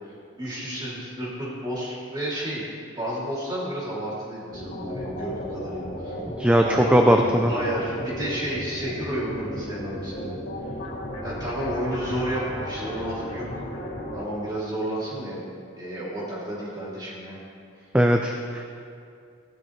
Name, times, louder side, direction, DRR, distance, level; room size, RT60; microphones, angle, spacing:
voice 1, 0.0-2.6 3.0-6.2 6.6-10.3 11.2-13.5 14.1-15.4 15.8-17.4, right 1 dB, 20° right, -7 dB, 2.9 m, -31 dB
sound 1, 4.5-14.3, left 1 dB, 75° left, 2.6 m, -34 dB
voice 2, 6.2-7.5 17.9-18.6, equal, 5° right, 3 dB, 0.4 m, -19 dB
15.0 x 11.5 x 3.3 m, 2.4 s
head